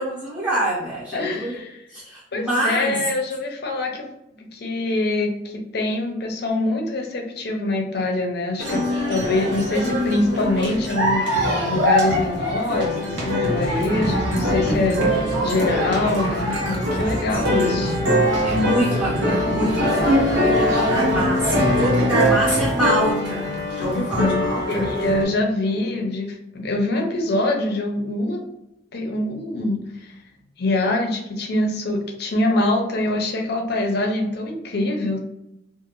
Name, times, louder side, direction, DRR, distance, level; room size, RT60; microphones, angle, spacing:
voice 1, 0.0-1.6 1.9-3.0 17.3-17.8 18.4-24.9, right 1 dB, 10° right, -10 dB, 0.7 m, -26 dB
voice 2, 1.1-1.8 2.3-4.1 4.4-8.8 9.1-18.0 23.9-28.4 28.9-30.1 30.6-35.2, left 2 dB, 60° left, 2 dB, 0.6 m, -24 dB
sound 1, 8.6-25.2, equal, 85° right, 0.9 m, -22 dB
sound 2, 13.4-22.7, equal, 55° right, 0.8 m, -29 dB
2.5 x 2.4 x 3.0 m, 0.85 s
head